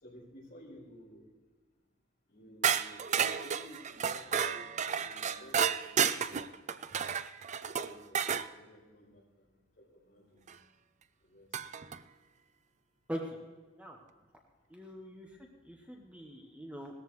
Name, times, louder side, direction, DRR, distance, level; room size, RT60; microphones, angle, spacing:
voice 1, 0.0-1.3 2.3-6.5 6.9-7.1 7.7-10.5 11.2-11.5 14.9-15.0 15.8-15.9, equal, 45° left, -5 dB, 5.1 m, -55 dB
sound 1, 2.6-8.5 10.5-10.6 11.5-12.0, right 7 dB, 35° right, 0.4 m, -32 dB
voice 2, 14.7-16.9, equal, 5° right, 0 dB, 1.2 m, -43 dB
18.0 x 14.0 x 3.2 m, 1.4 s
head